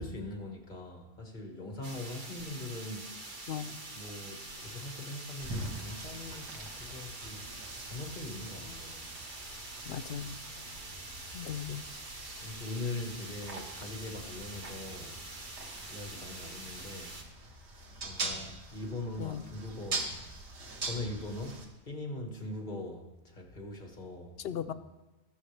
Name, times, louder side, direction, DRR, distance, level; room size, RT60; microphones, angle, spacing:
voice 1, 0.0-3.5 3.9-7.5 7.8-9.0 10.7-11.6 12.4-15.2 15.9-17.1 18.0-20.1 20.8-24.7, left 2 dB, 45° left, 2 dB, 1.7 m, -42 dB
sound 1, 1.8-17.2, right 2 dB, 50° right, 1.4 m, -45 dB
voice 2, 3.5-3.8 9.8-10.4 11.3-11.9 19.2-19.4 24.4-24.7, left 9 dB, 70° left, 11 dB, 0.8 m, -37 dB
sound 2, 5.4-21.7, right 2 dB, 90° right, 1.5 m, -43 dB
20.5 x 7.0 x 3.3 m, 1.1 s
omnidirectional pair, 1.1 m